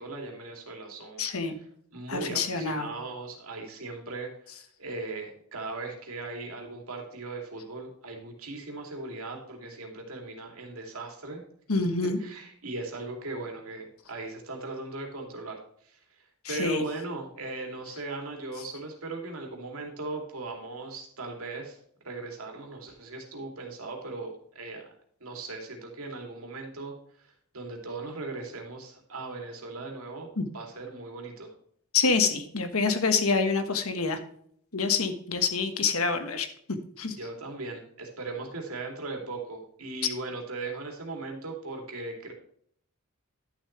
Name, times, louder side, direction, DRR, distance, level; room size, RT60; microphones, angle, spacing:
voice 1, 0.0-1.2 1.9-11.4 12.2-21.8 22.0-24.9 25.2-31.5 37.1-42.3, right 3 dB, 70° right, 2 dB, 2.7 m, -38 dB
voice 2, 1.2-1.5 2.1-2.9 11.7-12.2 16.4-16.8 30.4-30.5 31.9-34.2 34.7-36.5 37.0-37.2, left 4 dB, 70° left, 8 dB, 1.4 m, -26 dB
11.5 x 7.3 x 3.2 m, 0.65 s
head